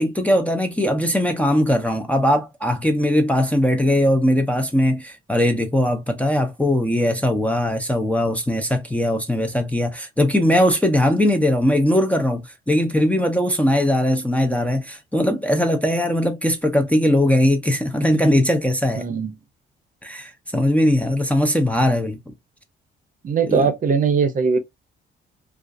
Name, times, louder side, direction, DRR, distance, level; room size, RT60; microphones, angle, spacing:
voice 1, 0.0-19.0 20.0-22.2 23.5-23.7, left 1 dB, 5° left, 0.5 m, -20 dB
voice 2, 18.9-19.4 23.2-24.6, right 5 dB, 40° right, 0.7 m, -20 dB
2.5 x 2.3 x 2.4 m
cardioid pair, 90°, 20 cm